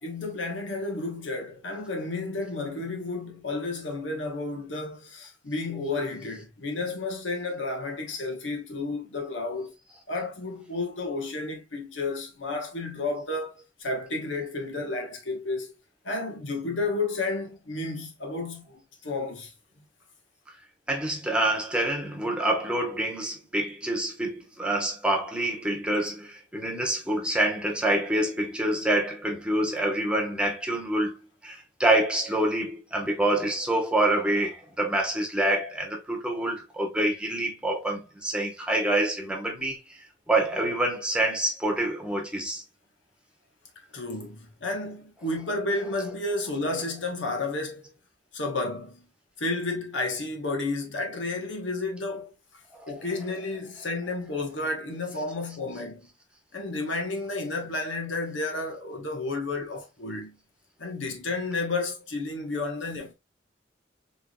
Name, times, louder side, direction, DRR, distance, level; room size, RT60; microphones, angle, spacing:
voice 1, 0.0-9.7 10.1-15.7 16.0-19.5 43.9-47.8 48.3-49.1 49.4-52.3 52.9-56.1 56.5-60.4 60.8-63.1, left 2 dB, 90° left, 1.3 m, -31 dB
voice 2, 20.9-31.2 31.4-40.0 40.3-42.6 52.7-52.9, right 1 dB, 5° right, 1.1 m, -26 dB
4.6 x 3.2 x 2.3 m
head